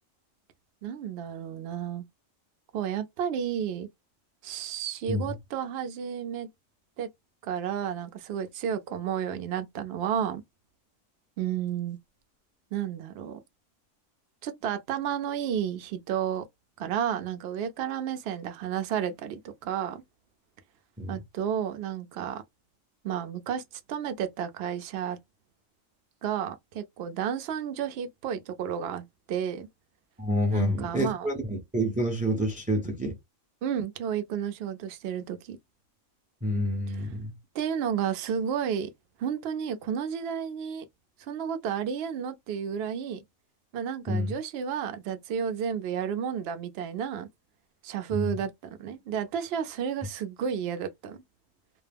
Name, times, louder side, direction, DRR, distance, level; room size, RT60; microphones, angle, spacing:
voice 1, 0.8-2.0 2.7-3.9 4.4-6.5 7.0-7.1 7.4-10.4 11.4-12.0 12.7-13.4 14.4-16.4 16.8-20.0 21.1-22.4 23.0-23.6 23.9-25.2 26.2-29.7 30.5-31.3 33.6-35.6 37.5-38.9 39.2-40.9 41.3-43.2 43.7-47.3 47.8-51.2, right 8 dB, 65° right, 0.7 m, -32 dB
voice 2, 30.2-33.2 36.4-37.3 44.1-44.3 48.1-48.3, equal, 10° right, 0.4 m, -28 dB
2.3 x 2.1 x 3.3 m
omnidirectional pair, 1.4 m